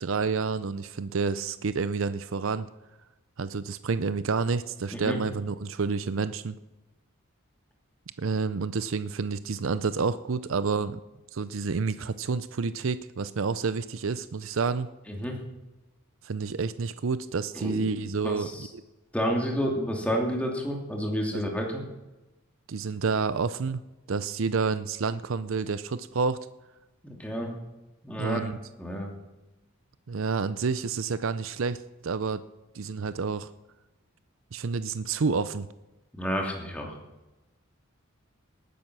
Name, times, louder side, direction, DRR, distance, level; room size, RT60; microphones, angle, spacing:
voice 1, 0.0-2.7 3.4-6.5 8.2-11.0 11.3-14.9 16.2-18.8 21.3-21.4 22.7-23.8 24.1-26.4 28.2-28.6 30.1-32.4 32.7-33.5 34.5-35.7, right 5 dB, 65° right, 14 dB, 0.5 m, -29 dB
voice 2, 17.6-17.9 18.2-18.7 19.1-21.8 27.0-27.5 28.0-28.5 28.8-29.1 36.1-37.0, equal, 5° left, 0 dB, 2.7 m, -30 dB
19.0 x 10.0 x 6.1 m, 1.0 s
head